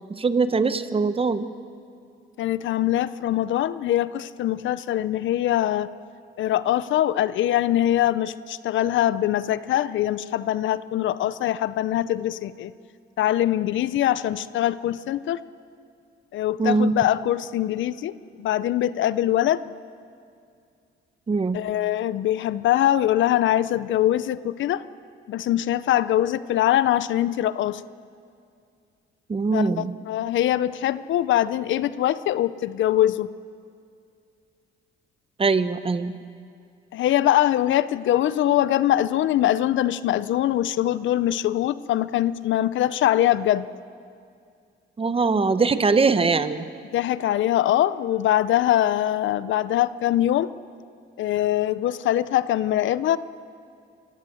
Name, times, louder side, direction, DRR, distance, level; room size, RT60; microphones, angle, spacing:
voice 1, 0.1-1.5 16.6-16.9 21.3-21.6 29.3-29.9 35.4-36.2 45.0-46.6, right 4 dB, 30° right, 12 dB, 1.0 m, -22 dB
voice 2, 2.4-5.9 6.4-12.7 13.2-15.4 16.3-18.1 18.4-19.7 21.5-24.8 25.3-27.8 29.5-33.3 36.9-43.7 46.9-50.5 51.2-53.2, left 12 dB, 75° left, 16 dB, 0.6 m, -23 dB
25.5 x 16.0 x 7.8 m, 2.3 s
cardioid pair, 90°, 20 cm